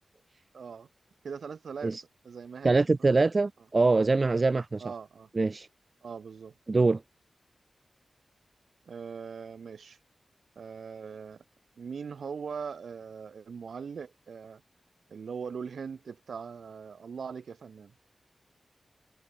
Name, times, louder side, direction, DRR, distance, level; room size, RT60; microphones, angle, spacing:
voice 1, 0.5-0.9 1.2-2.0 2.2-2.8 4.8-5.3 6.0-6.6 8.9-10.0 10.5-11.4 11.8-14.6 15.1-17.9, right 6 dB, 80° right, 6.4 m, -40 dB
voice 2, 2.6-4.8 5.3-5.7 6.7-7.0, right 3 dB, 50° right, 1.5 m, -24 dB
cardioid pair, 45°, 0 cm